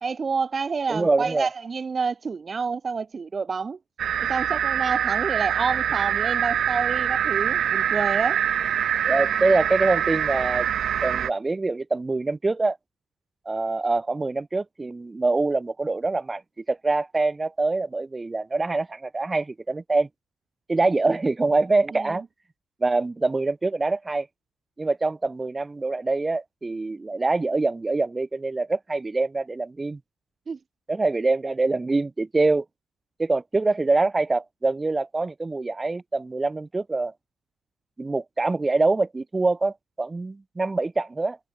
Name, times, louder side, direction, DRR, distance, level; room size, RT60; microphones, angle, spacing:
voice 1, 0.0-3.8 4.3-8.4 21.9-22.1 30.5-30.6, right 5 dB, 35° right, 1.9 m, -28 dB
voice 2, 0.9-1.5 9.0-10.7 11.0-12.8 13.4-20.1 20.7-22.2 22.8-24.3 24.8-30.0 30.9-32.6 33.2-37.1 38.0-41.4, right 3 dB, 20° right, 3.3 m, -24 dB
sound 1, 4.0-11.3, right 9 dB, 65° right, 0.4 m, -24 dB
cardioid pair, 90°, 0 cm